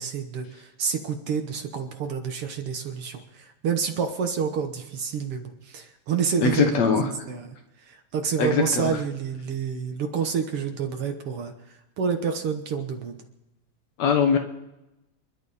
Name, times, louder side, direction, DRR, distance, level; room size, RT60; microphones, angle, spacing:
voice 1, 0.0-7.6 7.8-11.5 12.0-13.2, right 6 dB, 60° right, 5 dB, 1.8 m, -28 dB
voice 2, 6.4-7.1 8.4-8.9 14.0-14.4, left 6 dB, 70° left, 5 dB, 2.4 m, -21 dB
28.0 x 11.5 x 4.2 m, 0.96 s
omnidirectional pair, 3.3 m